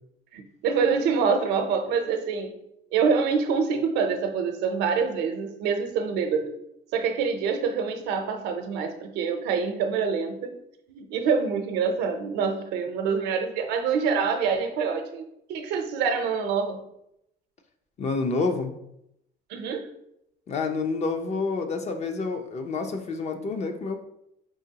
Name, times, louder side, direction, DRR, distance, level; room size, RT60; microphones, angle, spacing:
voice 1, 0.3-2.6 2.9-6.6 6.9-10.5 10.9-15.2 15.5-16.8 19.5-19.9, right 5 dB, 90° right, 6 dB, 0.6 m, -26 dB
voice 2, 18.0-18.7 20.5-24.0, left 4 dB, 40° left, 6 dB, 0.6 m, -28 dB
4.9 x 3.0 x 2.8 m, 0.80 s
cardioid pair, 110°, 17 cm